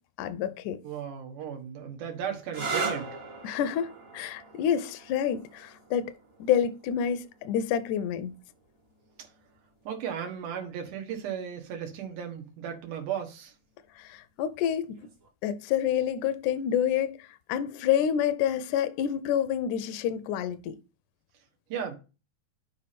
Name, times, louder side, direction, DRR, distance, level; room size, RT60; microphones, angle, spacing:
voice 1, 0.2-0.8 3.4-6.1 6.4-8.3 14.0-15.0 15.4-20.8, left 9 dB, 80° left, 2.0 m, -28 dB
voice 2, 0.8-3.1 9.2-9.3 9.8-13.5 21.7-22.0, right 8 dB, 85° right, 2.9 m, -35 dB
sound 1, 2.4-9.9 10.9-11.4 14.9-15.3, right 4 dB, 45° right, 1.1 m, -39 dB
6.4 x 5.1 x 4.3 m
omnidirectional pair, 3.6 m